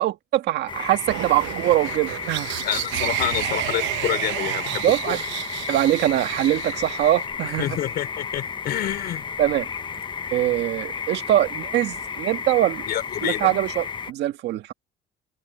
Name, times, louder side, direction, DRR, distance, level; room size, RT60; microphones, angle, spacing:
voice 1, 0.0-2.5 4.8-5.2 5.7-7.7 9.4-9.7 10.3-12.8 13.2-14.7, right 13 dB, 65° right, 1.7 m, -22 dB
sound 1, 0.7-14.1, left 6 dB, 25° left, 0.9 m, -33 dB
sound 2, 1.1-7.2, right 16 dB, 90° right, 1.0 m, -31 dB
voice 2, 2.6-5.2 7.4-9.3 12.9-13.5, left 12 dB, 60° left, 4.5 m, -28 dB
cardioid pair, 145°, 19 cm